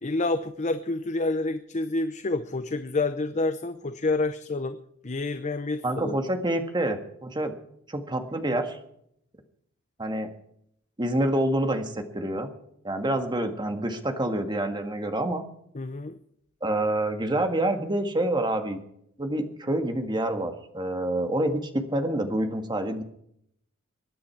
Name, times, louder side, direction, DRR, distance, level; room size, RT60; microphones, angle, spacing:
voice 1, 0.0-4.8 5.0-6.2 15.7-16.1, left 2 dB, 35° left, 10 dB, 0.7 m, -28 dB
voice 2, 5.8-7.5 7.9-8.8 10.0-10.3 11.0-12.5 12.8-15.4 16.6-18.8 19.2-23.0, right 1 dB, 20° right, 6 dB, 1.7 m, -27 dB
24.0 x 10.5 x 4.6 m, 0.72 s
head